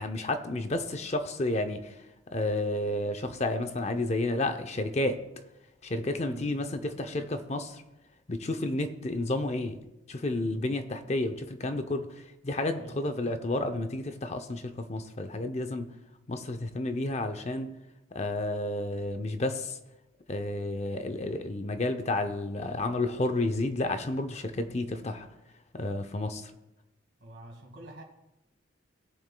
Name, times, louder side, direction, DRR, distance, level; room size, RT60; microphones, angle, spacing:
voice 1, 0.0-1.9 2.3-5.2 5.8-7.8 8.3-9.8 10.1-12.1 12.4-15.9 16.3-17.7 18.1-19.8 20.3-25.3 25.7-26.5, left 2 dB, 35° left, 0.6 m, -31 dB
voice 2, 6.2-6.6 10.6-11.0 12.7-13.0 27.2-28.0, right 1 dB, 65° right, 1.9 m, -47 dB
17.0 x 7.0 x 2.2 m
head